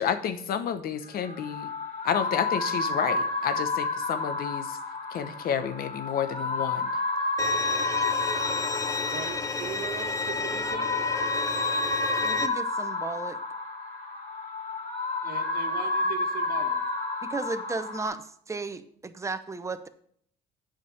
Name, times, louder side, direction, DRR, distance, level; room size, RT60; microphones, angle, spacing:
voice 1, 0.0-1.7 2.0-4.8 5.1-6.9, left 8 dB, 60° left, 11 dB, 0.9 m, -30 dB
sound 1, 1.1-18.1, left 3 dB, 40° left, 2.9 m, -30 dB
Bowed string instrument, 7.4-12.5, left 4 dB, 20° left, 0.6 m, -31 dB
voice 2, 9.1-10.9 15.2-16.8, right 9 dB, 65° right, 6 dB, 1.4 m, -39 dB
voice 3, 12.2-13.4 17.2-19.9, right 3 dB, 15° right, 10 dB, 0.7 m, -34 dB
8.3 x 5.1 x 7.1 m, 0.63 s
cardioid pair, 110°, 17 cm